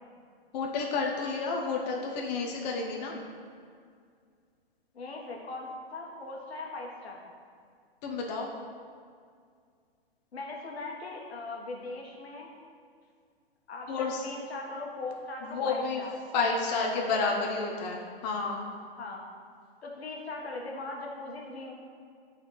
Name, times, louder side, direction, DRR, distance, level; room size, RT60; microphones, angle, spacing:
voice 1, 0.5-3.2 8.0-8.5 13.9-14.2 15.4-16.0 16.3-18.7, left 4 dB, 45° left, 0 dB, 0.8 m, -30 dB
voice 2, 4.9-7.2 10.3-12.5 13.7-16.1 16.8-17.2 17.6-17.7 19.0-19.2 19.8-21.7, left 2 dB, 85° left, 0 dB, 1.4 m, -40 dB
11.5 x 4.2 x 3.2 m, 2.2 s
hypercardioid pair, 135°, 31 cm